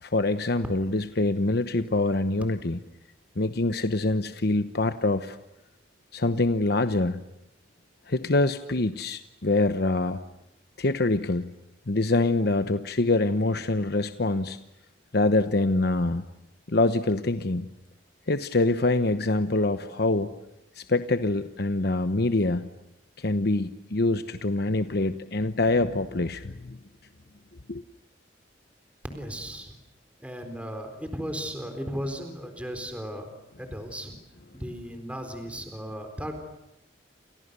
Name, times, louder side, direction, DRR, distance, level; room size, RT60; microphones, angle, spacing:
voice 1, 0.0-2.8 3.4-5.4 6.1-7.2 8.1-10.2 10.8-11.5 11.9-14.6 15.1-16.2 16.7-17.7 18.3-20.3 20.8-22.7 23.2-26.8 27.7-27.8, left 2 dB, 65° left, 9 dB, 1.0 m, -25 dB
voice 2, 29.0-29.7 30.2-33.3 33.6-34.2 34.6-36.3, equal, 5° right, 5 dB, 4.2 m, -35 dB
30.0 x 27.5 x 6.9 m, 0.87 s
head